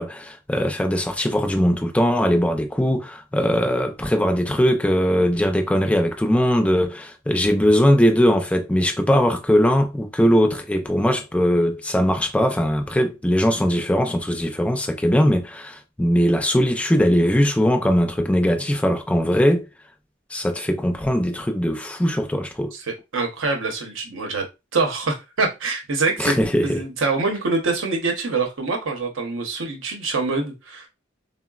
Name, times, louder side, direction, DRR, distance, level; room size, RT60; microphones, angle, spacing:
voice 1, 0.0-19.7 20.3-22.7 26.2-26.8, equal, 5° left, 0.4 m, -20 dB
voice 2, 22.7-24.5 24.7-26.4 26.6-30.9, right 3 dB, 80° right, 0.8 m, -25 dB
3.8 x 2.0 x 2.3 m
head